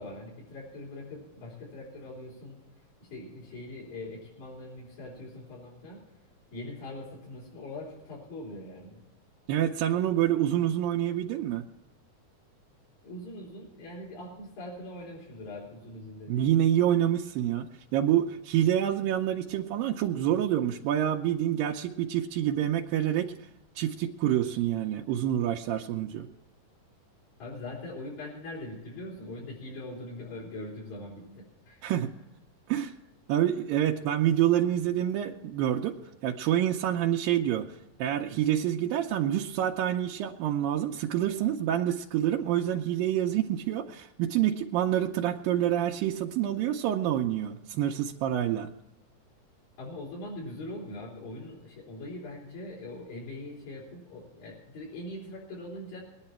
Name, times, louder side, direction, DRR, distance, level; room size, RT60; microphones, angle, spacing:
voice 1, 0.0-2.6 3.0-6.0 6.5-9.0 13.0-16.5 27.4-31.9 49.8-56.0, left 1 dB, 85° left, -7 dB, 6.1 m, -42 dB
voice 2, 9.5-11.7 16.3-23.5 23.8-26.3 31.8-32.1 32.7-32.9 33.3-48.7, right 11 dB, 90° right, 0 dB, 2.4 m, -27 dB
21.0 x 10.5 x 4.4 m, 0.94 s
omnidirectional pair, 4.0 m